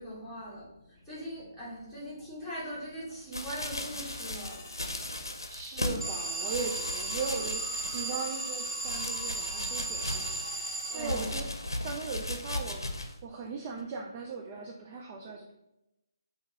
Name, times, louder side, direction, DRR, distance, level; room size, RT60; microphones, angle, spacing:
voice 1, 0.0-4.7 10.6-11.4, equal, 5° right, -10 dB, 1.7 m, -41 dB
sound 1, 3.3-6.1 6.4-8.3 8.6-10.6 11.0-13.2 13.8-13.9, left 1 dB, 80° left, 0.7 m, -37 dB
sound 2, 3.7-11.4, left 3 dB, 30° left, 0.9 m, -50 dB
voice 2, 5.5-11.5 11.8-12.8 13.2-15.5, right 4 dB, 25° right, 1 dB, 0.4 m, -38 dB
Alarm, 6.0-11.6, right 2 dB, 80° right, 1.5 m, -35 dB
5.0 x 2.7 x 3.9 m, 0.91 s
figure-of-eight pair, 145°, 2 cm